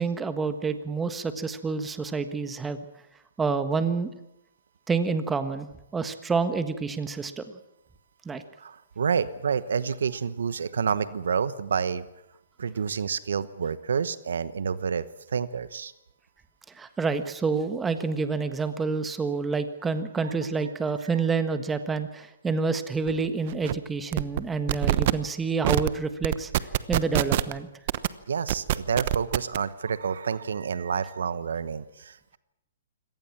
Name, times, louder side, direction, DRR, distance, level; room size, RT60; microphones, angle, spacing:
voice 1, 0.0-2.8 3.4-4.1 4.9-7.4 8.2-8.4 16.7-26.5 26.9-27.7, right 4 dB, 10° right, 9 dB, 1.6 m, -28 dB
voice 2, 8.6-12.1 12.6-15.0 15.3-15.9 28.3-32.4, right 6 dB, 80° right, 16 dB, 1.1 m, -29 dB
sound 1, 23.1-23.2 23.5-23.7 24.1-24.4 24.7-25.1 25.6-25.9 26.2-27.5 27.9-28.1 28.5-29.6, right 14 dB, 50° right, 1.0 m, -24 dB
24.0 x 18.0 x 7.4 m, 0.86 s
hypercardioid pair, 140°, 0 cm